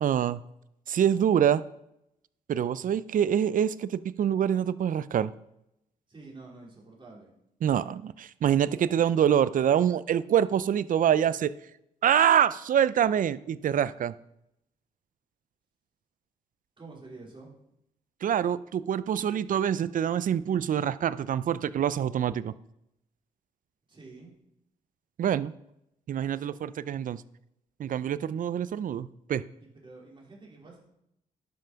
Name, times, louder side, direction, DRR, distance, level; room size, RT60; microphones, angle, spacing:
voice 1, 0.0-0.4 0.9-1.6 2.5-5.3 7.6-11.5 12.0-14.2 18.2-22.5 25.2-25.5 26.1-27.2 27.8-29.4, right 9 dB, 55° right, 17 dB, 0.5 m, -25 dB
voice 2, 6.1-7.3 16.8-17.5 23.9-24.3 29.8-30.8, right 3 dB, 30° right, -3 dB, 3.8 m, -48 dB
11.5 x 5.6 x 5.2 m, 0.80 s
cardioid pair, 80°, 16 cm